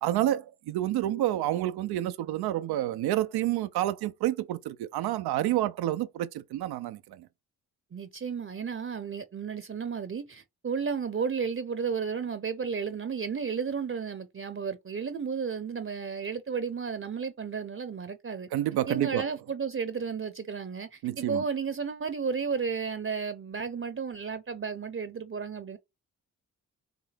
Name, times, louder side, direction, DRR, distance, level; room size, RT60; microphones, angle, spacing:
voice 1, 0.0-7.3 18.5-19.3 21.0-21.4, right 13 dB, 85° right, 0.5 m, -29 dB
voice 2, 7.9-18.5 18.9-25.8, right 6 dB, 35° right, 0.7 m, -33 dB
5.9 x 2.1 x 3.4 m
supercardioid pair, 50°, 37 cm